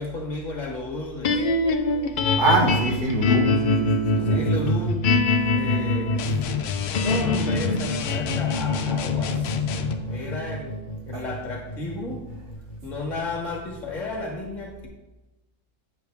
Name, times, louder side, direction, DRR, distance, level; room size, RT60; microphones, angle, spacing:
voice 1, 0.0-1.4 4.2-5.2 5.5-6.3 7.0-9.7 10.0-10.8 11.0-12.3 12.8-14.9, left 2 dB, 30° left, 1 dB, 1.5 m, -33 dB
sound 1, 1.2-13.5, left 2 dB, 65° left, 0.5 m, -25 dB
voice 2, 2.4-4.4 11.1-11.2, right 2 dB, 90° right, 0 dB, 1.9 m, -24 dB
sound 2, 6.2-10.0, left 8 dB, 90° left, 1.2 m, -28 dB
8.1 x 6.7 x 3.5 m, 1.1 s
omnidirectional pair, 1.6 m